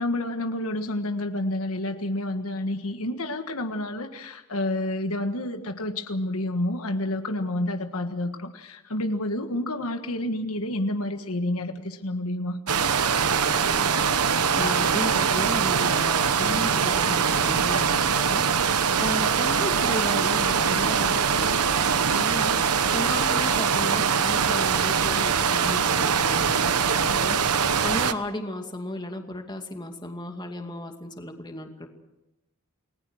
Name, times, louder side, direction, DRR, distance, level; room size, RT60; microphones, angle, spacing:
voice 1, 0.0-12.6, left 1 dB, 70° left, 7 dB, 1.6 m, -29 dB
sound 1, 12.7-28.1, right 6 dB, 85° right, 1.1 m, -23 dB
voice 2, 13.3-14.1 14.6-18.5 19.0-31.9, left 1 dB, 20° left, 5 dB, 2.4 m, -35 dB
29.5 x 19.5 x 6.5 m, 0.93 s
head